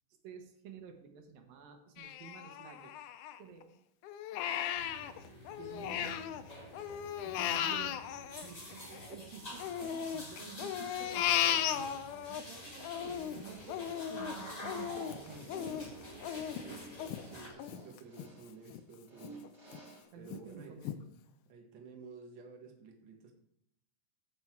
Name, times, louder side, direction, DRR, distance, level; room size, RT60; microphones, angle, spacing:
voice 1, 0.2-2.9 3.4-3.7 5.6-6.2 7.2-15.8 20.1-21.1, right 6 dB, 75° right, 5 dB, 2.9 m, -51 dB
Crying sobbing, 2.0-3.6 4.0-6.4 6.7-9.2 9.6-12.4 12.8-18.3 18.7-18.8 19.2-19.8 20.3-20.4 20.8-21.0, left 10 dB, 80° left, 1.8 m, -36 dB
sound 1, 4.7-17.5, left 1 dB, 20° left, 1.2 m, -49 dB
voice 2, 5.8-6.3 17.2-19.4 20.2-21.0 21.4-23.3, right 4 dB, 50° right, 2 dB, 1.5 m, -52 dB
sound 2, 13.5-20.0, right 2 dB, 10° right, 2.9 m, -53 dB
15.0 x 6.2 x 4.6 m, 0.74 s
omnidirectional pair, 4.1 m